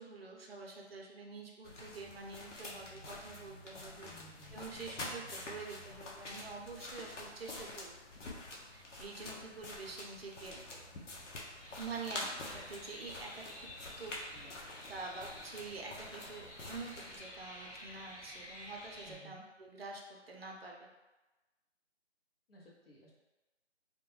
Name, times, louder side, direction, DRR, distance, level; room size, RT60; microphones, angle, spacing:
voice 1, 0.0-4.1 4.5-8.0 8.7-10.6 11.8-14.2 14.5-20.8, right 4 dB, 55° right, 0 dB, 0.5 m, -47 dB
sound 1, 1.6-17.2, left 2 dB, 90° left, 0.7 m, -47 dB
voice 2, 4.0-4.6 14.3-14.5 19.1-19.5 22.5-23.1, right 1 dB, 55° left, -4 dB, 0.8 m, -57 dB
sound 2, 11.6-19.2, left 1 dB, 20° left, 0.9 m, -51 dB
2.2 x 2.2 x 3.1 m, 1.1 s
figure-of-eight pair, 165°, 35 cm